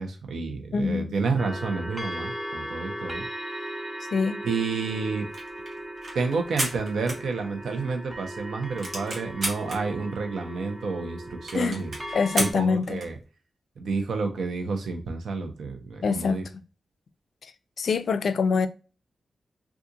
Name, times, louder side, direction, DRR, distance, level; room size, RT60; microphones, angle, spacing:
voice 1, 0.0-3.2 4.4-5.3 6.1-11.9 12.4-13.2 13.8-16.4, right 4 dB, 85° right, 0.7 m, -30 dB
voice 2, 0.7-1.2 4.1-4.4 11.5-11.8 12.1-13.0 16.0-16.4 17.4-17.5 17.8-18.7, left 5 dB, 65° left, 0.3 m, -25 dB
sound 1, 1.4-12.5, right 1 dB, 10° right, 0.4 m, -38 dB
sound 2, 5.2-7.8 8.2-8.3 8.5-9.8 10.4-10.5 10.7-10.8 11.0-11.1 11.5-13.2, right 2 dB, 50° right, 1.1 m, -33 dB
3.7 x 2.4 x 2.7 m
wide cardioid pair, 145°, 0 cm